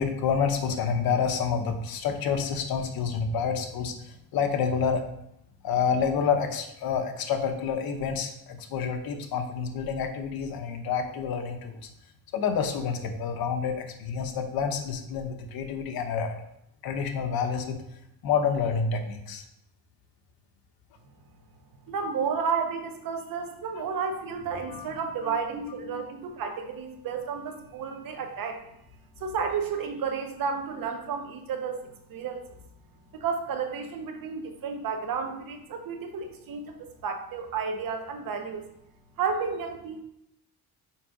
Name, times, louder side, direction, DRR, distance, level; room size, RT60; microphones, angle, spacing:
voice 1, 0.0-5.0 5.6-11.8 12.3-16.4 16.8-17.8 18.2-19.4 24.7-24.8 25.2-26.0, left 6 dB, 75° left, 6 dB, 1.1 m, -28 dB
voice 2, 21.8-28.7 29.2-32.6 33.1-38.7 39.2-40.0, right 5 dB, 65° right, 5 dB, 1.1 m, -32 dB
5.9 x 4.7 x 5.0 m, 0.79 s
cardioid pair, 120°, 36 cm